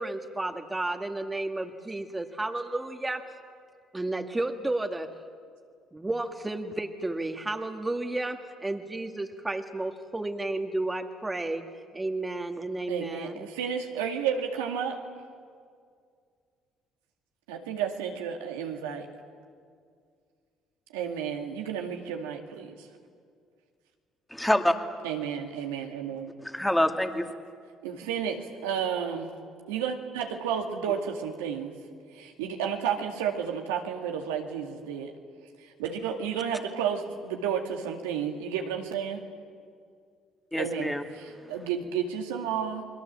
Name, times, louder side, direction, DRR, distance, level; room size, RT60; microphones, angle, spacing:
voice 1, 0.0-3.3 3.9-5.1 5.9-11.6 11.9-13.5, right 2 dB, 15° right, 5 dB, 2.0 m, -32 dB
voice 2, 12.9-15.0 17.5-19.1 20.9-22.8 25.0-26.3 27.8-29.3 29.7-31.7 32.1-35.1 35.8-39.2 40.6-42.8, right 8 dB, 90° right, 3 dB, 2.1 m, -32 dB
voice 3, 24.3-24.8 26.4-27.3 40.5-41.0 41.4-41.5, left 1 dB, 5° left, 5 dB, 2.3 m, -26 dB
29.5 x 21.5 x 7.5 m, 2.2 s
hypercardioid pair, 60°, 0 cm